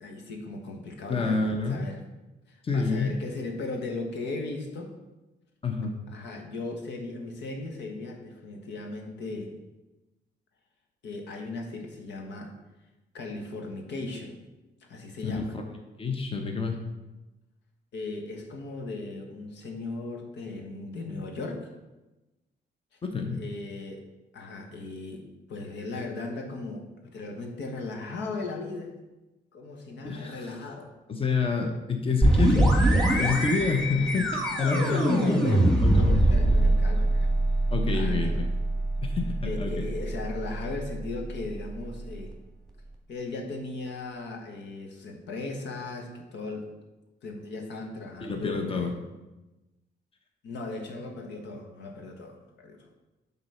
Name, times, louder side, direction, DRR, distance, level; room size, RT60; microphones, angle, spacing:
voice 1, 0.0-2.0 2.5-5.0 6.1-9.6 11.0-12.5 13.1-14.4 14.9-15.5 17.9-21.7 23.4-24.0 24.3-28.9 29.5-30.9 34.7-37.3 37.9-38.4 39.4-42.3 43.1-46.7 47.2-48.9 50.4-52.9, left 3 dB, 85° left, 3 dB, 1.3 m, -37 dB
voice 2, 1.1-1.8 2.6-3.1 5.6-6.0 15.2-15.6 16.0-16.8 23.0-23.4 30.0-30.5 31.1-35.2 35.8-36.1 37.7-38.5 39.0-39.8 48.2-48.9, left 4 dB, 30° left, 4 dB, 1.0 m, -28 dB
sound 1, 32.2-41.8, right 1 dB, 5° left, 1.8 m, -24 dB
7.5 x 4.0 x 5.6 m, 1.1 s
cardioid pair, 95°, 18 cm